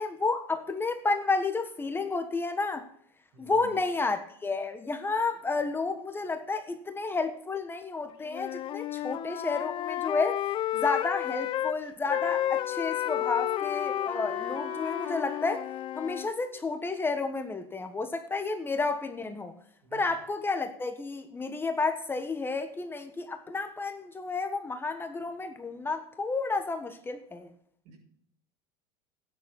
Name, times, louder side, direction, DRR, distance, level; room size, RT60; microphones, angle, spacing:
voice 1, 0.0-2.9 3.4-10.4 10.7-15.6 15.9-19.5 19.9-27.5, left 3 dB, 15° left, 1.3 m, -31 dB
voice 2, 3.3-3.7 19.8-20.0 27.8-28.0, right 2 dB, 60° right, 6.3 m, -50 dB
Wind instrument woodwind instrument, 8.3-11.8 12.1-16.3, left 12 dB, 40° left, 0.6 m, -32 dB
Wind instrument woodwind instrument 2, 12.0-17.1, left 5 dB, 85° right, 3.6 m, -43 dB
13.0 x 9.8 x 4.2 m
supercardioid pair, 105°, 13 cm